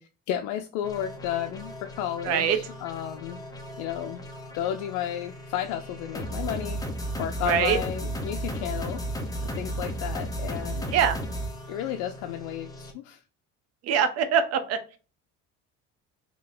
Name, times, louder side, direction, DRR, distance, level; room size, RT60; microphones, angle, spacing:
voice 1, 0.0-3.4 3.8-4.2 4.5-6.8 7.2-9.0 9.6-10.9 11.7-13.2, left 11 dB, 85° left, 5 dB, 0.5 m, -33 dB
sound 1, 0.8-12.9, right 1 dB, 10° left, 0.8 m, -35 dB
voice 2, 2.2-2.6 7.5-7.8 10.9-11.2 13.8-14.8, right 7 dB, 55° right, 9 dB, 0.8 m, -23 dB
3.6 x 2.8 x 3.7 m, 0.35 s
cardioid pair, 130°, 29 cm